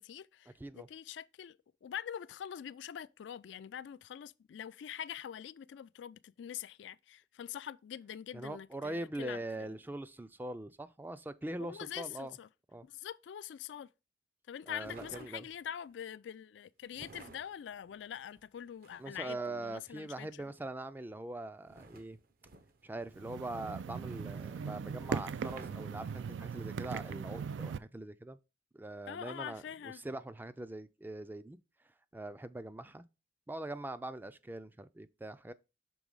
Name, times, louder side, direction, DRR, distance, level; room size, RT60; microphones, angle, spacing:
voice 1, 0.0-9.7 11.6-12.5 12.8-13.9 14.5-20.3 29.1-30.0, left 9 dB, 75° left, 0.3 m, -44 dB
voice 2, 8.3-12.4 12.7-12.9 14.7-15.5 19.0-22.2 22.8-28.4 28.7-31.6 32.1-33.0 33.5-35.5, right 2 dB, 10° right, 0.3 m, -42 dB
sound 1, 14.8-15.7 16.9-19.3 21.6-23.6 25.3-26.5 27.4-27.6, right 3 dB, 55° right, 0.7 m, -55 dB
sound 2, 23.1-27.8, right 6 dB, 85° right, 0.4 m, -39 dB
6.2 x 3.9 x 5.3 m
head